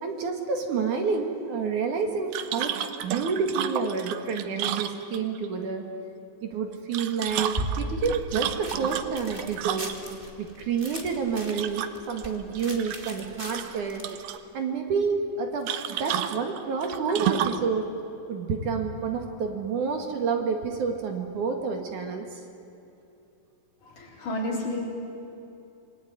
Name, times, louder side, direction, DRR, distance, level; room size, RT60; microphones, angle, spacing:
voice 1, 0.0-2.7 3.0-5.9 6.4-9.9 10.4-14.0 14.5-17.9 18.3-22.4, right 5 dB, 60° right, 4 dB, 3.1 m, -29 dB
sound 1, 2.3-5.5 6.7-10.2 11.5-12.2 12.6-13.3 13.5-14.4 15.7-17.7, right 11 dB, 85° right, 2.8 m, -31 dB
sound 2, 7.3-14.4, right 1 dB, 20° right, 1.9 m, -37 dB
voice 2, 23.8-24.8, left 1 dB, 55° left, -2 dB, 6.1 m, -31 dB
28.0 x 21.5 x 9.5 m, 2.8 s
omnidirectional pair, 4.2 m